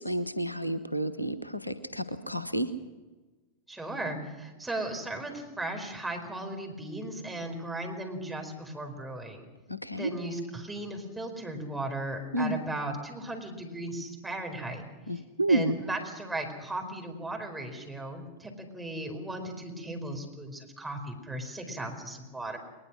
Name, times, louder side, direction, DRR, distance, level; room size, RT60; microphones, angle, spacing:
voice 1, 0.0-2.7 9.7-10.1 12.3-12.6 15.1-15.8, right 1 dB, 90° left, 13 dB, 1.1 m, -30 dB
voice 2, 3.7-9.5 10.0-14.8 15.5-22.6, right 1 dB, 5° right, 2 dB, 4.7 m, -36 dB
21.5 x 21.0 x 6.3 m, 1.2 s
figure-of-eight pair, 90°, 0 cm